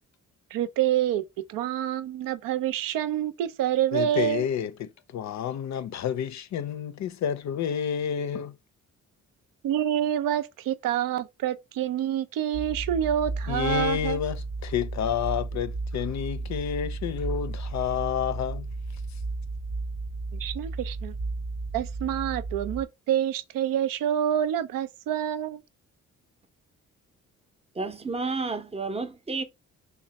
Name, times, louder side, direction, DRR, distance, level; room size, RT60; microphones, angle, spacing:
voice 1, 0.5-1.2 1.5-4.5 9.6-14.2 20.3-21.1 21.7-25.6, right 10 dB, 85° right, 0.5 m, -27 dB
voice 2, 3.9-8.5 13.5-18.7, left 8 dB, 55° left, 0.5 m, -29 dB
sound 1, 12.5-22.8, right 3 dB, 60° right, 0.9 m, -34 dB
voice 3, 27.8-29.4, right 3 dB, 20° right, 0.6 m, -31 dB
3.2 x 2.2 x 4.0 m
cardioid pair, 75°, 33 cm